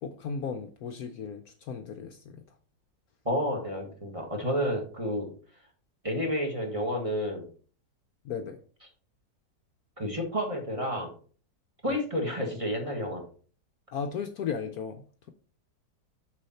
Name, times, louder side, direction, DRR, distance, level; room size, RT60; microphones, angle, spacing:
voice 1, 0.0-2.4 8.2-8.6 11.9-12.0 13.9-15.3, left 6 dB, 65° left, 1.0 m, -36 dB
voice 2, 3.2-5.3 6.0-7.4 10.0-11.1 11.8-13.2, equal, 20° right, 1.5 m, -30 dB
6.6 x 5.5 x 4.2 m
omnidirectional pair, 1.9 m